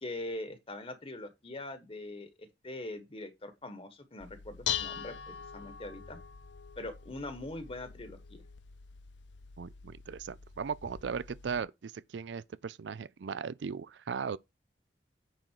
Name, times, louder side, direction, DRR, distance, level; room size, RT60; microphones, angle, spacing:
voice 1, 0.0-6.2 6.8-8.4, left 2 dB, 35° left, 1.2 m, -42 dB
Dishes pots and pans, 4.2-11.6, left 9 dB, 90° left, 0.7 m, -42 dB
voice 2, 9.6-14.4, right 6 dB, 75° right, 0.4 m, -38 dB
9.2 x 3.9 x 4.5 m
head